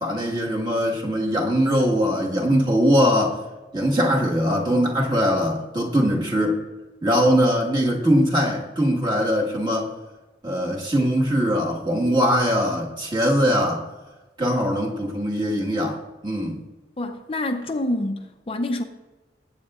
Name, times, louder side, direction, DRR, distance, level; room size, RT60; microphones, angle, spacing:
voice 1, 0.0-3.4 3.7-6.6 7.0-9.9 10.4-13.8 14.4-16.6, equal, 25° right, 1.6 m, -21 dB
voice 2, 17.0-18.8, left 1 dB, 30° left, 0.5 m, -27 dB
19.5 x 8.7 x 2.4 m
head